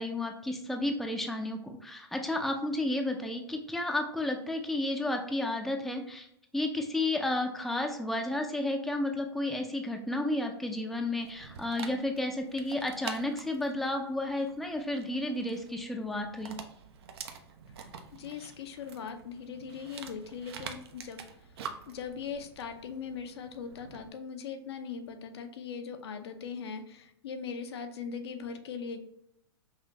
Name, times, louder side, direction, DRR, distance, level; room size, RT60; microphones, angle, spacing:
voice 1, 0.0-6.3 6.5-16.5, left 1 dB, ahead, 3 dB, 0.5 m, -32 dB
Dog, 11.2-24.1, right 6 dB, 70° right, 0.6 m, -47 dB
voice 2, 18.2-21.2 21.9-29.0, left 6 dB, 70° left, 6 dB, 0.6 m, -40 dB
5.5 x 2.5 x 3.0 m, 0.74 s
hypercardioid pair, 115°, 14 cm